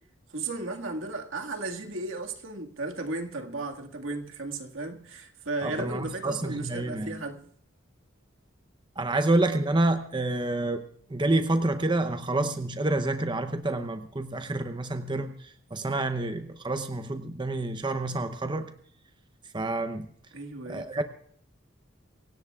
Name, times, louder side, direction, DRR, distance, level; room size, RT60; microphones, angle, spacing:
voice 1, 0.3-7.4 20.3-21.0, right 3 dB, 75° right, 1.9 m, -35 dB
voice 2, 5.6-7.2 9.0-10.8 11.1-18.7 19.5-20.1 20.7-21.0, right 2 dB, 25° right, 0.8 m, -28 dB
25.0 x 16.5 x 2.4 m
head